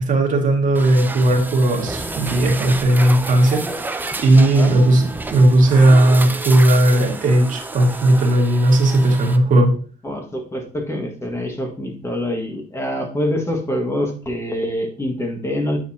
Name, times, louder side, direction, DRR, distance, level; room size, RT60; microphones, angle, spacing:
voice 1, 0.0-9.7, right 1 dB, 50° right, 0 dB, 2.3 m, -16 dB
sound 1, 0.7-9.4, right 2 dB, 10° right, 0.6 m, -30 dB
voice 2, 4.4-4.8 10.0-15.8, left 1 dB, 15° left, 2 dB, 1.9 m, -25 dB
9.1 x 5.5 x 2.9 m, 0.41 s
cardioid pair, 110°, 17 cm